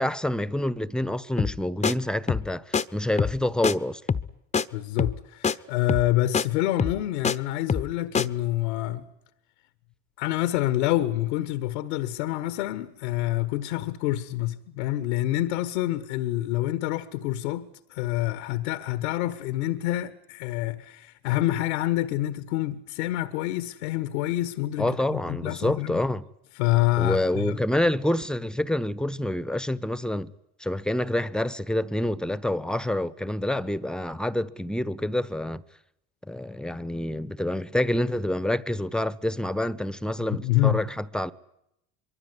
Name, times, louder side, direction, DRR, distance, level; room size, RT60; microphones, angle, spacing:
voice 1, 0.0-4.0 24.8-26.2 27.0-30.3 30.6-35.6 36.2-41.3, left 1 dB, ahead, 1.1 m, -27 dB
sound 1, 1.4-1.6 1.8-1.9 2.3-2.5 2.7-2.8 3.2-3.4 3.6-3.7 4.1-4.3 4.5-4.6 5.0-5.2 5.4-5.5 5.9-6.1 6.3-6.4 6.8-7.3 7.7-7.9 8.1-8.3, left 6 dB, 20° left, 1.0 m, -24 dB
voice 2, 4.7-9.0 10.2-26.0 26.5-27.6 40.2-40.8, left 15 dB, 75° left, 1.4 m, -27 dB
24.0 x 23.0 x 9.6 m
hypercardioid pair, 85°, 33 cm